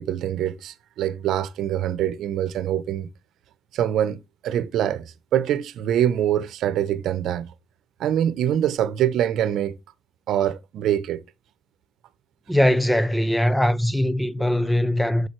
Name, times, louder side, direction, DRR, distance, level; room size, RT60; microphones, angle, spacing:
voice 1, 0.0-3.1 3.7-7.5 8.0-9.7 10.3-11.2, right 10 dB, 70° right, 0.8 m, -24 dB
voice 2, 12.5-15.3, left 1 dB, 5° left, 0.6 m, -21 dB
11.0 x 6.7 x 3.2 m
cardioid pair, 120°, 0 cm